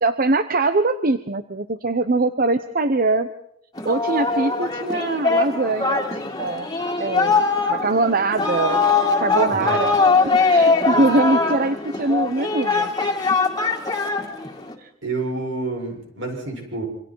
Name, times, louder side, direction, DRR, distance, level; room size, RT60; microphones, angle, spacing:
voice 1, 0.0-3.3 3.8-6.7 7.0-8.8 9.2-10.0 10.5-12.9 14.8-14.9, right 2 dB, 45° right, 11 dB, 0.8 m, -22 dB
Singing, 3.8-14.7, left 4 dB, 20° left, 2.3 m, -21 dB
voice 2, 15.0-16.9, right 3 dB, 70° right, 1 dB, 7.1 m, -28 dB
27.0 x 25.5 x 4.7 m, 0.73 s
head